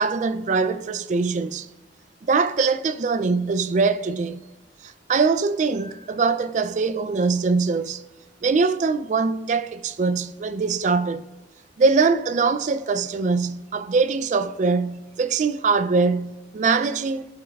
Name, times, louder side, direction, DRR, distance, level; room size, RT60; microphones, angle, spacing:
voice 1, 0.0-1.7 2.3-4.4 4.8-8.0 8.4-11.3 11.8-17.3, right 4 dB, 40° right, 0.3 m, -22 dB
12.0 x 5.3 x 2.3 m
head